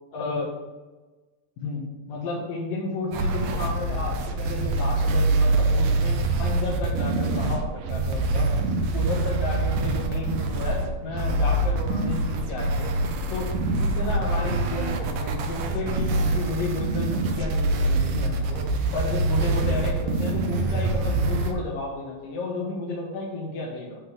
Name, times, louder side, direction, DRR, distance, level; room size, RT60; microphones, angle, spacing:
voice 1, 0.1-0.5 1.6-8.5 8.9-12.9 13.3-18.6 18.9-24.0, left 3 dB, 80° left, -4 dB, 3.3 m, -32 dB
tb field haight, 3.1-21.5, right 2 dB, 75° right, 2.4 m, -25 dB
12.0 x 4.1 x 7.6 m, 1.2 s
omnidirectional pair, 3.8 m